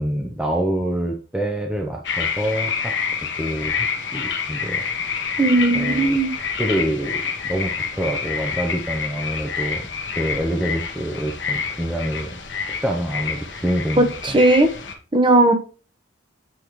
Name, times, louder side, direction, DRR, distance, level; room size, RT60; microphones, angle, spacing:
voice 1, 0.0-2.9 3.4-3.9 4.1-4.8 5.7-6.2 6.6-9.8 10.2-12.4 12.7-14.4, right 1 dB, 5° right, 1 dB, 0.7 m, -26 dB
sound 1, 2.0-14.9, left 6 dB, 65° left, 1.2 m, -28 dB
voice 2, 5.4-6.3 14.0-14.7 15.1-15.5, right 2 dB, 25° right, 5 dB, 1.0 m, -16 dB
8.1 x 5.2 x 3.1 m, 0.37 s
head